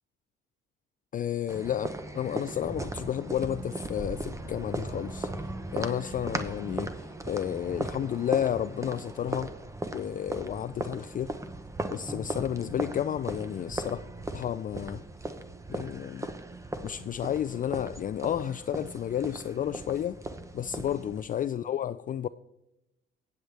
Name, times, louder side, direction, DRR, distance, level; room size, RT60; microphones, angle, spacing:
voice 1, 1.1-9.5 9.9-11.3 11.9-14.0 14.3-15.0 15.7-16.3 16.8-20.2 20.5-22.3, left 10 dB, 45° left, 0.4 m, -32 dB
sound 1, 1.5-21.2, right 2 dB, 15° right, 0.9 m, -38 dB
19.0 x 7.8 x 3.4 m
cardioid pair, 90°, 20 cm